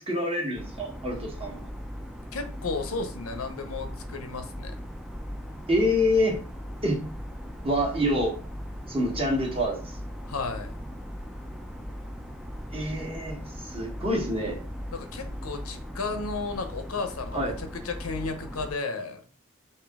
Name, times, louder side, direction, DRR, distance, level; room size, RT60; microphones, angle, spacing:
voice 1, 0.0-1.6 5.7-6.4 6.8-7.0 7.6-8.3 8.9-9.9 12.7-14.6 17.3-17.5, left 1 dB, 25° right, -1 dB, 1.2 m, -26 dB
sound 1, 0.6-18.7, equal, ahead, 0.3 m, -39 dB
voice 2, 2.3-4.7 10.3-10.7 14.9-19.2, left 4 dB, 70° left, 7 dB, 0.7 m, -33 dB
5.0 x 2.9 x 3.5 m, 0.39 s
head